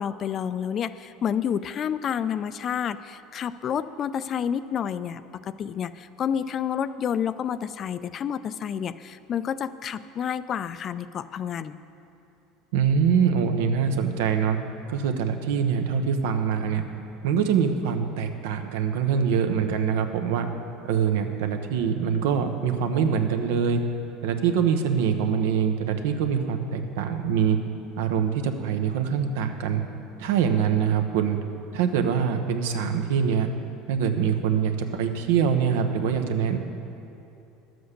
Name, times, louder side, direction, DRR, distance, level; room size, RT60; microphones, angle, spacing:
voice 1, 0.0-11.8, left 8 dB, 35° left, 14 dB, 0.3 m, -29 dB
voice 2, 12.7-14.6 14.9-16.8 17.2-20.5 20.8-23.8 24.2-27.6 28.0-29.8 30.2-31.4 31.7-33.5 33.9-36.6, right 7 dB, 90° right, 6 dB, 0.9 m, -24 dB
11.0 x 7.9 x 6.6 m, 2.8 s
supercardioid pair, 135°, 0 cm